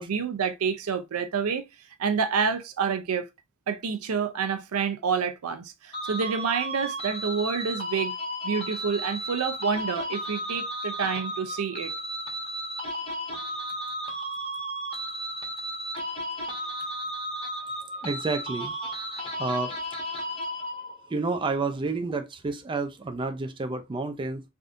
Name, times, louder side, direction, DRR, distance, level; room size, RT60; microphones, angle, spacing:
voice 1, 0.0-1.6 2.0-3.3 3.7-8.2 8.4-11.9, right 6 dB, 80° right, 0.5 m, -28 dB
sound 1, 5.9-21.2, equal, 25° left, 1.2 m, -34 dB
voice 2, 18.0-18.7 19.4-19.8 21.1-24.4, right 3 dB, 20° right, 0.4 m, -29 dB
3.5 x 2.6 x 2.5 m
head